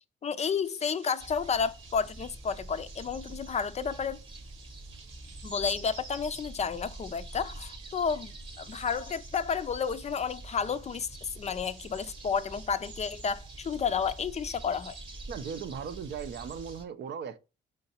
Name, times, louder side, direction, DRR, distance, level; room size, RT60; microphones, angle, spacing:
voice 1, 0.2-4.2 5.4-15.0, left 6 dB, 35° left, 0.4 m, -31 dB
sound 1, 0.6-16.8, right 6 dB, 80° right, 1.0 m, -55 dB
sound 2, 1.2-16.9, right 2 dB, 25° right, 0.8 m, -46 dB
voice 2, 15.3-17.4, right 7 dB, 60° right, 0.5 m, -38 dB
4.4 x 3.8 x 2.8 m
cardioid pair, 90°, 20 cm